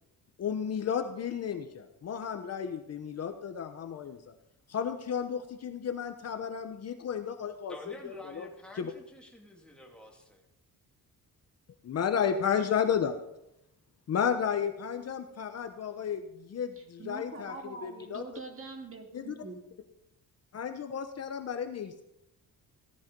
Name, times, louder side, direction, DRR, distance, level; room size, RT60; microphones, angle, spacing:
voice 1, 0.4-4.2 4.7-7.7 8.0-8.5 8.8-8.9 11.8-13.2 14.1-17.5 17.8-18.2 19.1-19.4 20.5-22.0, left 7 dB, 40° left, 7 dB, 1.0 m, -32 dB
voice 2, 7.7-10.4, left 1 dB, 5° left, -1 dB, 2.8 m, -49 dB
voice 3, 16.8-19.6, right 3 dB, 35° right, 3 dB, 2.4 m, -44 dB
17.0 x 14.0 x 5.3 m, 0.84 s
cardioid pair, 180°, 37 cm